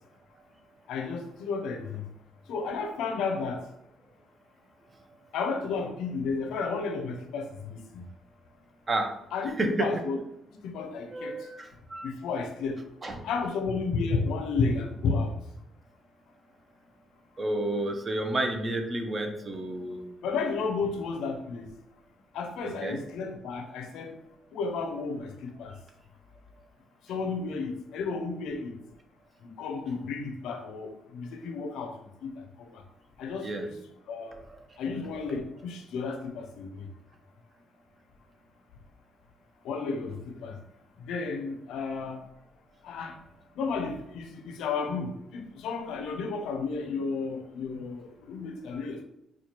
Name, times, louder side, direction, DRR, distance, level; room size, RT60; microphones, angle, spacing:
voice 1, 0.9-2.0 2.5-3.6 5.3-8.0 9.3-10.2 10.6-11.4 12.0-12.8 13.2-15.3 20.2-21.7 22.3-24.1 24.5-25.7 27.1-28.8 29.4-31.9 32.2-32.8 33.2-33.7 34.1-34.3 34.8-36.9 39.6-40.6 41.1-42.2 42.8-43.1 43.6-49.0, left 4 dB, 85° left, 5 dB, 0.5 m, -32 dB
voice 2, 11.1-12.1 13.0-13.2 17.4-20.0 22.6-23.0 33.4-33.7 34.5-34.7, right 2 dB, 35° right, 5 dB, 0.6 m, -30 dB
4.2 x 2.3 x 2.9 m, 0.81 s
cardioid pair, 90°, 0 cm